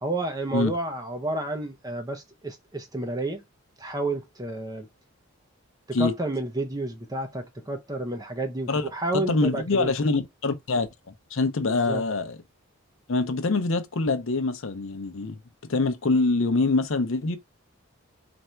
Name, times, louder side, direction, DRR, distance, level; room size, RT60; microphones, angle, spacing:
voice 1, 0.0-3.4 3.8-4.9 5.9-9.9 11.7-12.0, right 2 dB, 15° right, 0.7 m, -30 dB
voice 2, 8.7-10.9 11.3-12.4 13.1-15.4 15.7-17.4, left 3 dB, 60° left, 0.6 m, -25 dB
3.3 x 2.6 x 4.4 m
head